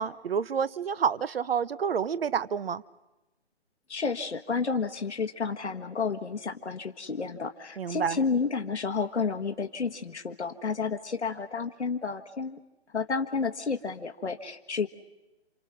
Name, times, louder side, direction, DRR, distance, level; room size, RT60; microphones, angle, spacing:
voice 1, 0.0-2.8 7.8-8.2, right 7 dB, 60° right, 1.1 m, -29 dB
voice 2, 3.9-12.6 12.9-14.9, left 5 dB, 85° left, 1.5 m, -31 dB
29.5 x 27.0 x 6.1 m
figure-of-eight pair, 145°, 33 cm